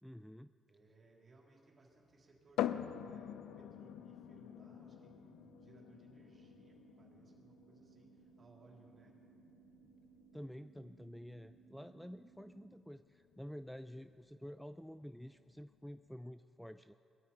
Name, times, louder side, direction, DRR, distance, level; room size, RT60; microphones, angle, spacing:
voice 1, 0.0-0.5 10.3-16.9, equal, ahead, 11 dB, 0.3 m, -50 dB
voice 2, 0.6-9.2 13.8-14.0, right 3 dB, 40° right, -2 dB, 3.5 m, -65 dB
sound 1, 2.6-16.1, left 11 dB, 90° left, 0.4 m, -47 dB
sound 2, 2.7-12.7, right 9 dB, 85° right, 1.6 m, -64 dB
21.5 x 13.0 x 4.4 m, 2.9 s
cardioid pair, 90°, 0 cm